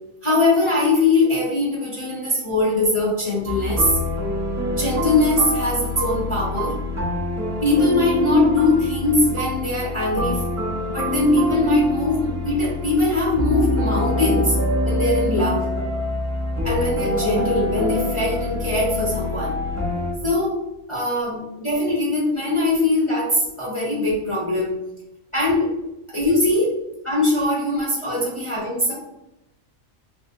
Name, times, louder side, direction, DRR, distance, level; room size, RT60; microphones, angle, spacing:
voice 1, 0.2-4.0 4.7-6.8 7.6-10.4 10.9-14.6 14.8-15.7 16.6-19.6 20.2-20.5 20.9-24.7 25.3-25.7 26.1-26.7 27.0-28.9, left 2 dB, 25° left, -7 dB, 0.8 m, -21 dB
sound 1, 3.5-20.1, left 1 dB, 20° right, 0.4 m, -25 dB
3.4 x 2.7 x 2.6 m, 0.90 s
omnidirectional pair, 1.4 m